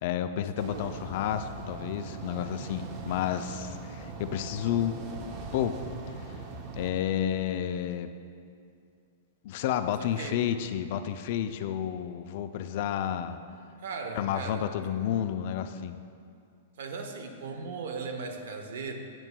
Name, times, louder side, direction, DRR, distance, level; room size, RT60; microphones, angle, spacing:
voice 1, 0.0-5.0 5.5-5.8 6.7-8.1 9.4-13.4 14.1-16.0, left 10 dB, 50° left, 10 dB, 0.3 m, -31 dB
sound 1, 0.6-6.9, right 4 dB, 35° right, 0.6 m, -41 dB
voice 2, 10.0-10.5 13.8-14.7 16.8-18.9, right 4 dB, 70° right, 5 dB, 0.8 m, -37 dB
8.9 x 6.7 x 2.2 m, 2.4 s
hypercardioid pair, 145°, 0 cm